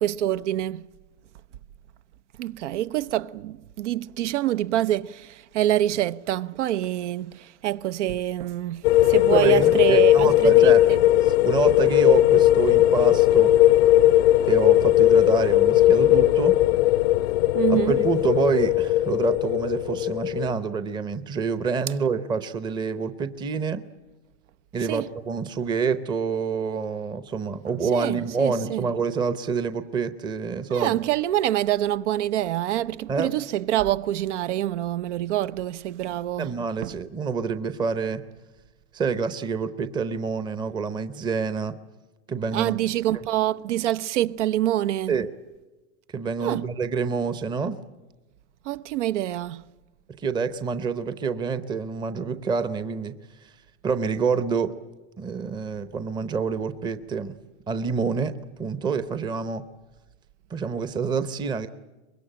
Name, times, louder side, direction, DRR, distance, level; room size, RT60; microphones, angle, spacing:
voice 1, 0.0-0.8 2.4-10.7 17.5-18.0 24.9-25.1 27.9-28.8 30.7-36.5 36.8-36.9 42.5-45.1 46.4-46.6 48.7-49.6, right 13 dB, 80° right, 0.9 m, -26 dB
sound 1, 8.8-20.5, left 14 dB, 60° left, 0.7 m, -18 dB
voice 2, 9.3-10.8 11.2-13.6 14.5-16.6 17.7-23.8 24.7-31.0 33.1-33.3 36.4-38.2 38.9-41.8 42.3-42.8 45.1-45.3 46.1-47.8 50.2-53.2 53.8-54.7 55.2-57.3 57.7-58.3 58.6-59.6 60.5-61.7, right 5 dB, 15° right, 0.7 m, -27 dB
24.5 x 21.5 x 8.8 m
supercardioid pair, 155°, 35 cm